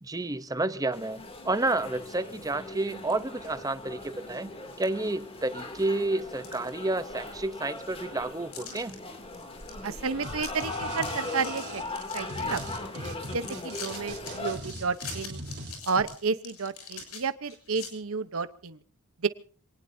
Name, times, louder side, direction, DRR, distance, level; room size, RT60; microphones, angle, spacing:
voice 1, 0.0-9.0, right 2 dB, 15° right, 0.8 m, -30 dB
sound 1, 0.9-14.6, left 2 dB, 25° left, 2.7 m, -39 dB
sound 2, 3.0-3.6 4.0-4.1 4.8-4.9 5.3-5.8 6.2-7.2 7.5-7.6 8.5-8.9 9.3-9.7 10.0-10.1 10.3-10.7 10.9-12.8 13.2-17.9, left 5 dB, 75° left, 6.8 m, -44 dB
voice 2, 9.8-11.8 12.1-12.6 13.0-15.4 15.8-18.8 19.2-19.3, right 5 dB, 65° right, 0.9 m, -31 dB
sound 3, 10.2-10.3 10.6-16.0, right 1 dB, 50° right, 4.0 m, -40 dB
26.5 x 19.0 x 2.7 m
head